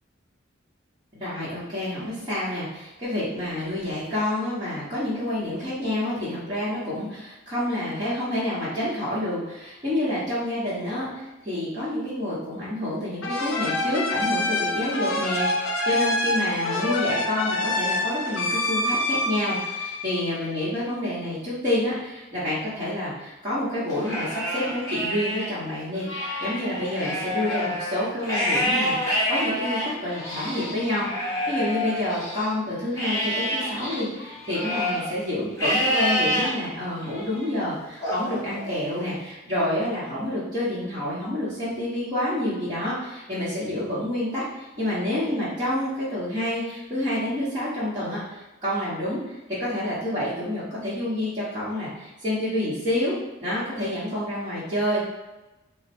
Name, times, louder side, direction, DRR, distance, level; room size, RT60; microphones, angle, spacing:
voice 1, 1.1-31.1 31.5-49.2 49.5-55.0, left 1 dB, 20° right, -12 dB, 1.0 m, -28 dB
sound 1, 13.2-20.6, left 2 dB, 75° left, 0.5 m, -26 dB
Livestock farm animals working animals, 23.9-25.5 25.9-32.5 33.0-35.1 35.6-36.5 37.0-37.5 38.0-39.1, equal, 15° left, 1.1 m, -28 dB
3.2 x 2.1 x 4.2 m, 1.1 s
head